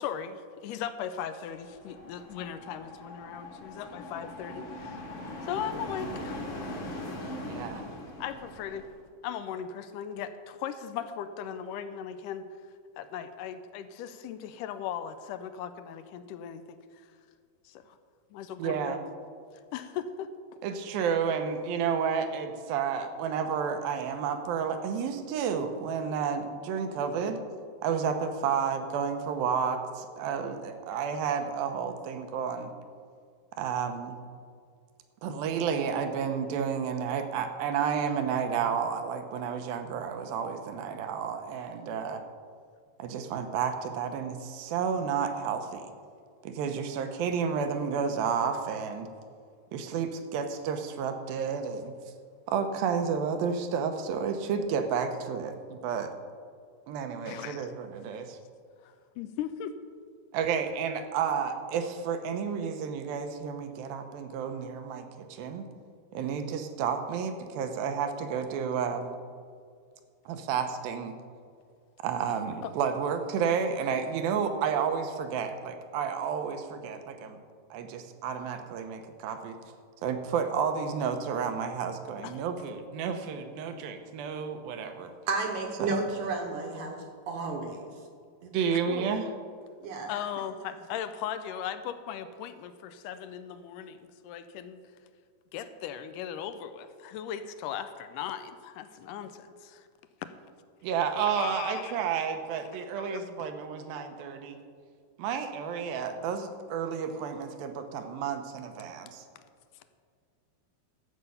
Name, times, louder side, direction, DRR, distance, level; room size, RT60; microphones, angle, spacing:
voice 1, 0.0-5.0 5.4-6.4 7.2-7.3 8.2-8.8 9.2-12.5 13.0-16.6 17.7-18.0 18.3-19.0 19.7-20.3 31.1-31.2 57.3-57.7 58.8-59.7 72.6-72.7 82.2-82.3 90.1-94.8 95.5-99.9 100.2-100.3 101.4-102.0 103.0-103.2, left 9 dB, 80° left, 11 dB, 2.0 m, -38 dB
sound 1, 1.5-9.0, left 1 dB, 45° left, 1.8 m, -41 dB
voice 2, 7.5-7.9 18.6-19.0 20.6-27.4 27.8-32.7 33.6-34.2 35.2-42.2 43.0-45.9 46.4-49.1 49.7-51.9 52.5-56.1 56.9-58.4 60.3-65.6 66.1-69.2 70.3-71.1 72.0-77.4 77.7-79.6 80.0-85.1 85.8-86.0 88.5-89.3 100.8-104.6 105.2-109.2, right 6 dB, 85° right, 7 dB, 2.7 m, -31 dB
voice 3, 85.3-87.0 87.3-87.8 88.4-88.5 88.9-89.2 89.8-90.1, right 3 dB, 65° right, 3 dB, 2.3 m, -32 dB
13.0 x 8.1 x 5.6 m, 2.2 s
omnidirectional pair, 4.2 m